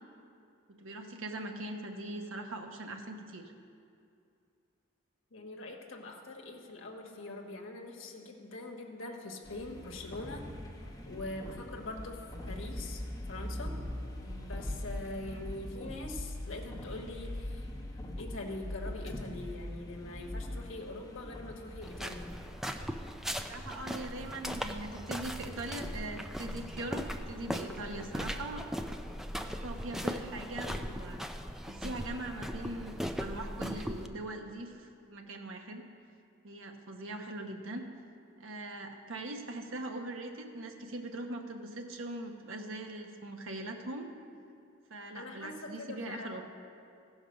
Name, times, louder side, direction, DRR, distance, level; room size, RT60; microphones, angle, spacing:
voice 1, 0.7-3.5 23.5-28.7 29.4-31.2 31.7-35.9 36.4-37.8 38.4-44.1 44.9-46.4, right 2 dB, 80° right, 4 dB, 1.0 m, -41 dB
voice 2, 5.3-10.5 11.1-13.0 13.3-13.7 14.2-17.7 18.2-22.3 45.1-46.4, left 2 dB, 70° left, 0 dB, 1.2 m, -43 dB
sound 1, 9.4-22.5, left 1 dB, 20° left, 1.2 m, -41 dB
sound 2, 21.8-34.1, equal, ahead, 0.3 m, -38 dB
15.0 x 5.2 x 6.2 m, 2.5 s
head